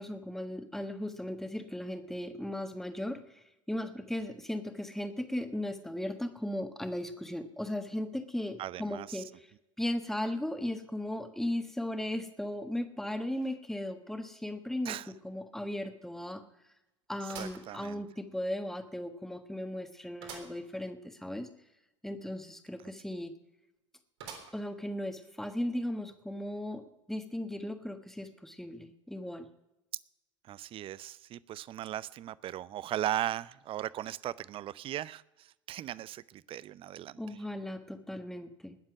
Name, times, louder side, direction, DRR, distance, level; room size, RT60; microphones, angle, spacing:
voice 1, 0.0-9.3 9.8-15.0 15.2-16.4 17.1-21.5 22.0-23.3 24.5-29.5 37.2-38.8, left 1 dB, ahead, 8 dB, 1.4 m, -37 dB
voice 2, 8.6-9.2 14.8-15.1 17.2-18.0 30.4-37.2, right 12 dB, 35° right, 20 dB, 0.5 m, -38 dB
sound 1, 15.0-15.1 15.6-15.7 17.3-18.4 18.9-19.0 20.2-20.6 21.0-21.1 21.3-21.4 24.2-24.8 25.4-25.5 26.5-26.6, right 6 dB, 65° right, 3.5 m, -47 dB
20.0 x 7.4 x 6.0 m, 0.94 s
figure-of-eight pair, 75°, 16 cm